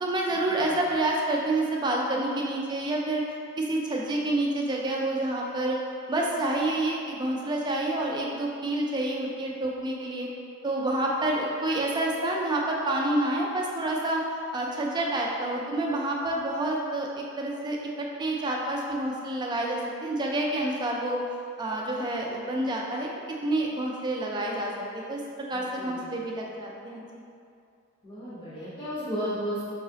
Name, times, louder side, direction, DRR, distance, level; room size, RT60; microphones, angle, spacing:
voice 1, 0.0-3.2 3.6-5.8 6.1-10.3 10.6-14.2 14.5-17.1 17.4-21.2 21.6-23.1 23.4-25.2 25.5-27.0, right 1 dB, 20° right, -1 dB, 0.4 m, -28 dB
voice 2, 25.5-26.2 28.0-29.6, equal, 25° left, -11 dB, 0.8 m, -34 dB
4.7 x 2.9 x 2.8 m, 2.4 s
head